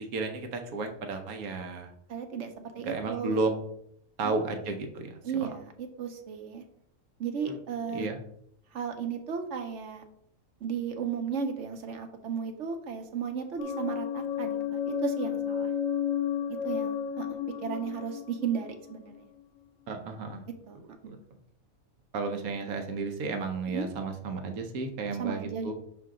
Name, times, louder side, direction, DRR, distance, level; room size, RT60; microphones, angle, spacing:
voice 1, 0.1-1.9 2.8-3.5 4.2-5.5 7.5-7.6 7.9-8.2 19.9-20.4 21.0-21.2 22.1-25.7, right 3 dB, 80° right, 5 dB, 1.3 m, -33 dB
voice 2, 2.1-3.6 4.2-4.7 5.2-6.6 7.2-8.1 8.7-10.0 10.6-15.7 16.5-19.3 20.7-21.2 23.7-23.9 25.1-25.7, right 7 dB, 60° right, 6 dB, 1.0 m, -35 dB
sound 1, 13.6-19.4, left 8 dB, 70° left, 0.9 m, -32 dB
6.1 x 4.7 x 3.7 m, 0.69 s
omnidirectional pair, 1.5 m